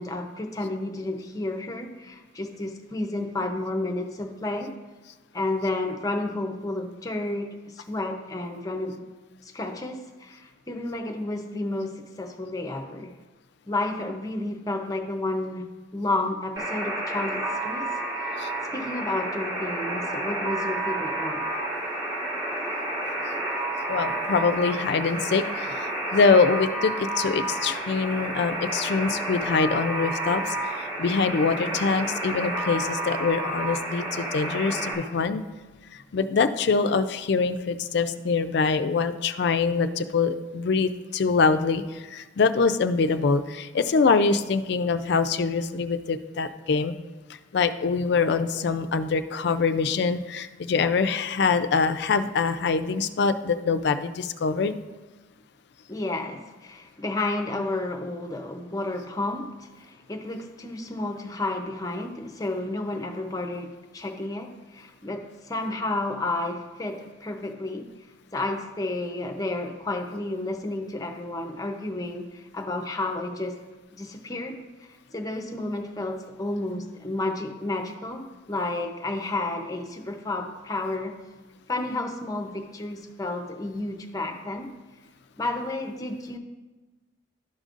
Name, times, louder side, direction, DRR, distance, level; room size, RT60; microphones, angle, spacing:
voice 1, 0.0-4.7 5.3-9.1 9.5-13.1 13.7-17.9 18.4-18.5 18.7-21.5 55.9-67.9 68.3-73.6 73.9-74.6 75.1-81.1 81.7-84.7 85.4-86.4, left 2 dB, 20° left, 3 dB, 0.6 m, -31 dB
Alarm, 16.6-34.9, right 1 dB, 20° right, 1.4 m, -30 dB
voice 2, 23.9-35.4 36.1-46.9 47.5-54.8, left 4 dB, 60° left, 10 dB, 0.4 m, -24 dB
12.0 x 5.2 x 2.5 m, 1.2 s
head